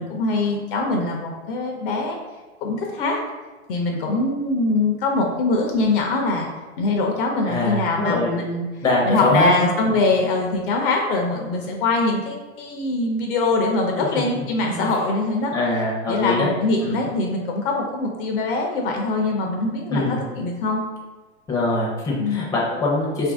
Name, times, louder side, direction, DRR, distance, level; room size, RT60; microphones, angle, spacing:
voice 1, 0.0-2.2 2.6-3.2 3.7-6.5 6.8-8.6 9.1-15.5 16.1-20.8 22.2-22.4, left 2 dB, 50° left, 1 dB, 0.6 m, -23 dB
voice 2, 7.5-8.3 8.8-10.0 14.1-14.4 14.7-14.9 15.5-16.5 16.8-16.9 19.9-20.2 21.5-23.3, left 2 dB, 10° left, -4 dB, 0.6 m, -23 dB
2.7 x 2.6 x 3.5 m, 1.2 s
hypercardioid pair, 125°, 36 cm